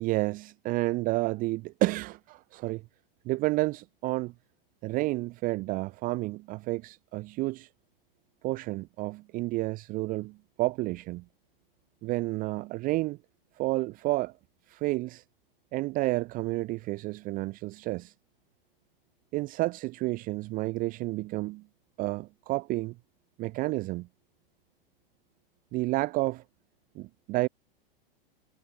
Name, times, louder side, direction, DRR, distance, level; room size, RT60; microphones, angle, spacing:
voice 1, 0.0-2.8 3.2-4.3 4.8-7.7 8.4-11.2 12.0-13.2 13.6-14.3 14.7-15.2 15.7-18.1 19.3-21.6 22.0-22.9 23.4-24.1 25.7-26.4 27.0-27.5, right 21 dB, 30° right, 0.6 m, -30 dB
hypercardioid pair, 105°, 29 cm